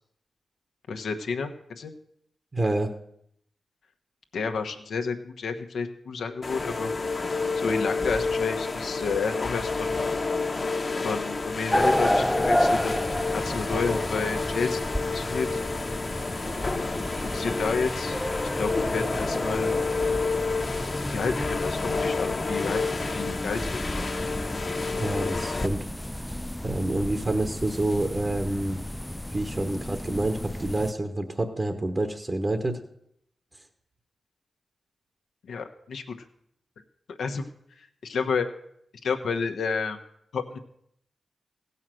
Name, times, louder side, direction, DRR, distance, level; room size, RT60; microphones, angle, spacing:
voice 1, 0.9-1.9 4.3-6.9 7.6-10.0 11.0-13.0 13.3-14.8 15.1-15.6 17.1-18.2 18.6-19.7 21.1-24.0 35.5-36.2 37.2-37.4 38.0-38.5 39.0-40.0 40.3-40.6, left 5 dB, 85° left, 5 dB, 1.1 m, -30 dB
voice 2, 2.5-2.9 25.0-25.8 26.6-28.8 29.3-32.8, right 1 dB, 40° right, 5 dB, 1.3 m, -27 dB
sound 1, 6.4-25.7, left 4 dB, 50° left, 1.2 m, -29 dB
sound 2, 10.8-19.0, right 1 dB, 20° right, 1.0 m, -46 dB
sound 3, 11.7-30.9, left 1 dB, 10° left, 0.4 m, -31 dB
16.0 x 5.7 x 7.7 m, 0.73 s
cardioid pair, 45°, 0 cm